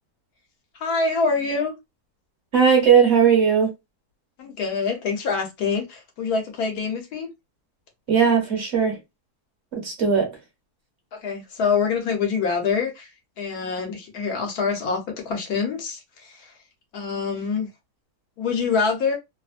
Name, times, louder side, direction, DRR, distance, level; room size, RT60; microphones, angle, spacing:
voice 1, 0.8-1.7 4.4-7.3 11.1-13.1 13.4-16.5 16.9-17.7 18.4-19.2, left 5 dB, 75° left, 1.4 m, -25 dB
voice 2, 2.5-3.7 8.1-9.0 9.7-10.4, right 6 dB, 50° right, 1.0 m, -18 dB
3.0 x 2.1 x 2.4 m
omnidirectional pair, 1.6 m